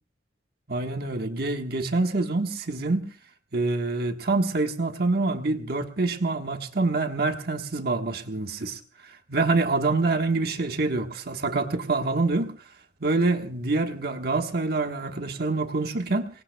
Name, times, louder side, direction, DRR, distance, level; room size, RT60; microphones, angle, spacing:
voice 1, 0.7-3.1 3.5-12.5 13.0-16.3, right 3 dB, 60° right, 1.3 m, -26 dB
29.5 x 19.0 x 2.2 m
head